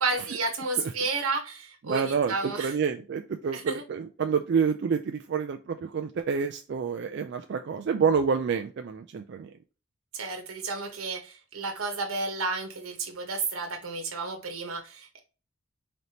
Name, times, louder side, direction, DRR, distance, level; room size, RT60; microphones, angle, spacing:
voice 1, 0.0-2.7 3.5-3.8 10.1-15.2, right 3 dB, 85° right, 3 dB, 1.1 m, -32 dB
voice 2, 1.9-9.5, right 6 dB, 55° right, 6 dB, 0.3 m, -28 dB
4.0 x 3.4 x 2.8 m, 0.34 s
head